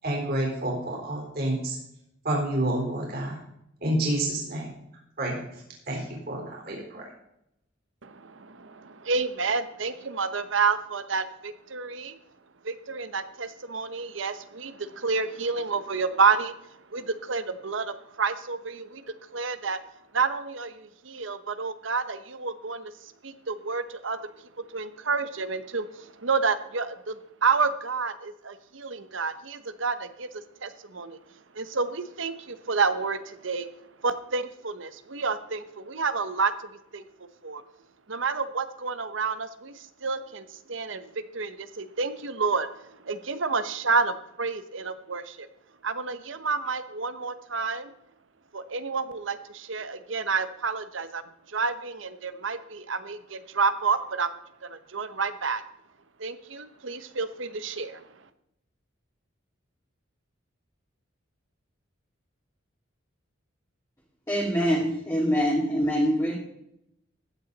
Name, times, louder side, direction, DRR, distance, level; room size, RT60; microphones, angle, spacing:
voice 1, 0.0-1.8 2.2-3.4 3.8-4.7 5.2-5.4 5.9-7.0, right 1 dB, 50° right, -2 dB, 4.1 m, -28 dB
voice 2, 8.0-12.1 12.6-16.5 16.9-19.0 19.3-19.8 20.1-22.9 23.2-24.2 24.7-27.1 27.4-30.3 30.6-31.2 31.6-33.7 34.0-36.5 36.9-37.0 37.4-37.6 38.1-39.7 40.0-41.0 41.3-42.7 43.1-45.5 45.8-47.9 48.5-51.2 51.5-54.3 54.6-55.6 56.2-58.0, right 4 dB, 70° right, 12 dB, 1.0 m, -29 dB
voice 3, 64.3-66.3, equal, 15° left, -4 dB, 2.2 m, -24 dB
15.0 x 9.7 x 4.1 m, 0.79 s
head